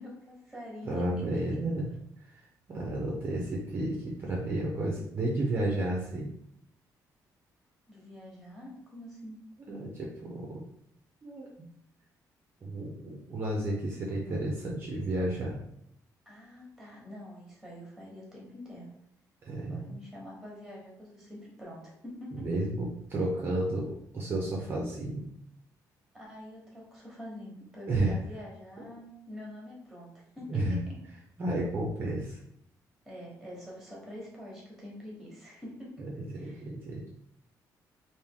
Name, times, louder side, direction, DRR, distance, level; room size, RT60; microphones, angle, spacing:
voice 1, 0.0-1.1 1.5-1.8 7.9-9.4 16.3-18.9 19.7-22.5 26.1-31.0 33.0-36.1 36.3-36.6, left 1 dB, ahead, -3 dB, 1.1 m, -46 dB
voice 2, 0.8-1.9 2.7-6.3 9.7-10.6 11.2-11.5 12.6-15.6 19.4-19.9 22.3-25.3 27.9-28.2 28.8-28.9 30.5-30.8 31.4-32.4 36.0-37.1, right 1 dB, 30° right, -3 dB, 0.6 m, -32 dB
3.4 x 2.6 x 3.6 m, 0.72 s
cardioid pair, 180°, 7 cm